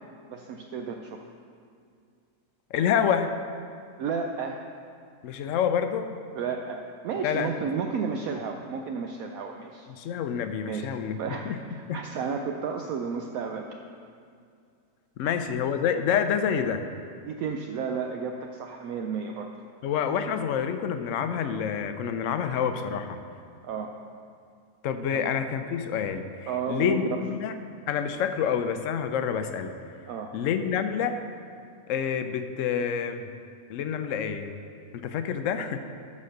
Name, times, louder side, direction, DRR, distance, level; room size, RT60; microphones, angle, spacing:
voice 1, 0.3-1.2 4.0-4.6 6.3-9.9 10.7-13.7 15.2-15.4 17.2-19.5 23.6-23.9 25.1-25.3 26.5-27.0 30.1-30.3, right 5 dB, 70° right, 3 dB, 0.9 m, -32 dB
voice 2, 2.7-3.3 5.2-6.1 7.2-7.5 10.0-11.2 11.4-11.6 11.8-12.0 15.2-16.8 19.8-23.2 24.8-27.5 27.9-29.7 30.3-31.2 31.9-33.3 33.7-34.5 34.9-35.8, left 8 dB, 65° left, 8 dB, 0.8 m, -27 dB
12.0 x 4.3 x 6.5 m, 2.3 s
omnidirectional pair, 1.7 m